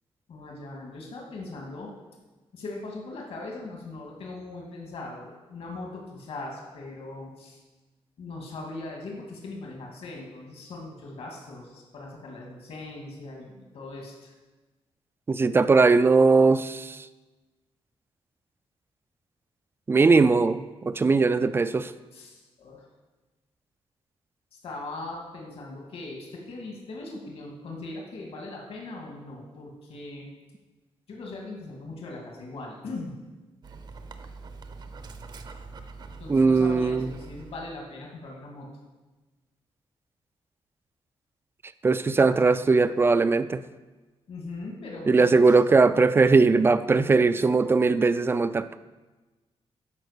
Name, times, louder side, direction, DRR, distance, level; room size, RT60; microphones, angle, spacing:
voice 1, 0.3-1.9 2.5-7.6 8.2-14.3 22.1-22.9 24.5-30.3 31.1-33.1 36.1-38.7 44.3-45.6, left 2 dB, 65° left, -1 dB, 2.4 m, -40 dB
voice 2, 15.3-17.0 19.9-21.9 36.3-37.1 41.8-43.6 45.1-48.8, right 4 dB, 20° right, 13 dB, 0.4 m, -20 dB
Dog, 33.6-37.8, right 4 dB, 40° right, 0.7 m, -43 dB
12.5 x 5.3 x 6.7 m, 1.2 s
wide cardioid pair, 170°, 11 cm